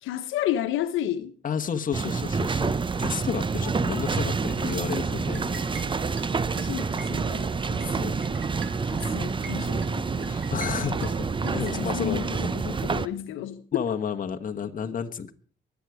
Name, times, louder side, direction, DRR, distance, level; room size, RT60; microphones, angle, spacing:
voice 1, 0.0-1.3 6.6-8.2 8.9-10.5 11.4-13.6, left 11 dB, 90° left, 1.1 m, -32 dB
voice 2, 1.4-5.7 10.5-12.2 13.7-15.3, left 7 dB, 45° left, 1.4 m, -31 dB
sound 1, 1.9-13.1, right 4 dB, 25° right, 0.7 m, -28 dB
sound 2, 4.6-11.8, right 6 dB, 80° right, 3.0 m, -43 dB
23.5 x 8.3 x 4.9 m
cardioid pair, 90°, 20 cm